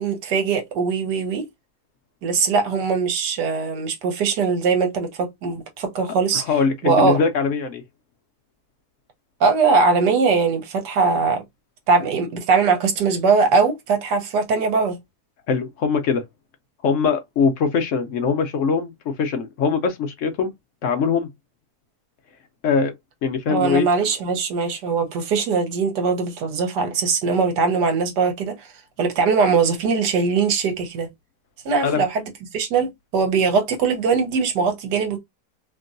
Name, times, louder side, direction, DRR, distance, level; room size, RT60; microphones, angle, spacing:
voice 1, 0.0-1.4 2.2-6.4 6.8-7.2 9.4-11.4 11.9-15.0 23.5-28.7 29.0-31.1 31.6-32.2 32.5-35.2, right 5 dB, 75° right, 1.5 m, -21 dB
voice 2, 6.3-7.8 15.5-16.2 16.8-20.5 20.8-21.3 22.6-22.9 23.2-23.9 31.8-32.0, left 5 dB, 75° left, 0.7 m, -22 dB
2.9 x 2.6 x 2.5 m
omnidirectional pair, 1.8 m